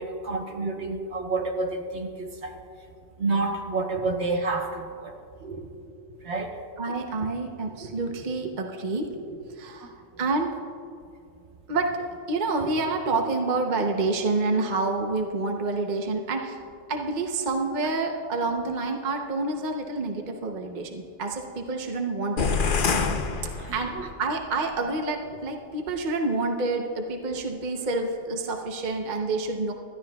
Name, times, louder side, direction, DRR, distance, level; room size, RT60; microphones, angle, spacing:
voice 1, 0.0-2.5 3.2-5.1 6.2-6.5 23.6-24.1, right 3 dB, 60° right, 2 dB, 1.5 m, -29 dB
voice 2, 5.4-5.9 6.8-10.5 11.7-12.0 12.3-16.6 16.9-22.5 23.4-29.7, right 3 dB, 40° right, 3 dB, 1.0 m, -28 dB
sound 1, 22.4-24.2, left 5 dB, 50° left, 0.8 m, -26 dB
25.5 x 13.5 x 2.4 m, 2.4 s
omnidirectional pair, 1.3 m